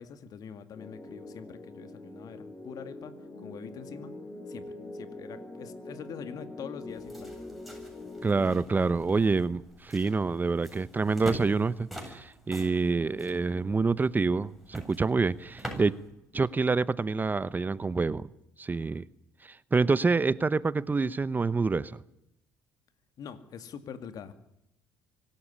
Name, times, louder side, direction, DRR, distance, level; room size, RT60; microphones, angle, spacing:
voice 1, 0.0-3.1 3.4-4.2 4.5-7.4 23.2-24.3, left 7 dB, 55° left, 2.2 m, -44 dB
sound 1, 0.7-8.6, left 2 dB, 35° left, 6.1 m, -44 dB
sound 2, 6.9-16.1, right 1 dB, ahead, 7.8 m, -45 dB
voice 2, 8.2-16.0 16.3-18.3 18.6-19.1 19.4-22.0, right 4 dB, 25° right, 0.8 m, -27 dB
25.0 x 13.0 x 10.0 m
hypercardioid pair, 65°, 8 cm